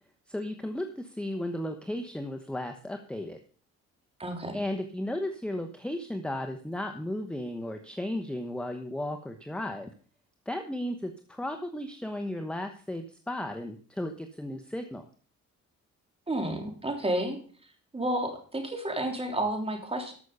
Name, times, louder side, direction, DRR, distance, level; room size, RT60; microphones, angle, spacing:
voice 1, 0.3-3.4 4.5-9.9 10.5-15.0, left 1 dB, 5° left, 6 dB, 1.0 m, -35 dB
voice 2, 4.2-4.6 16.3-17.4 17.9-20.1, right 1 dB, 20° right, 3 dB, 3.2 m, -31 dB
13.5 x 6.4 x 5.4 m, 0.43 s
cardioid pair, 90°, 30 cm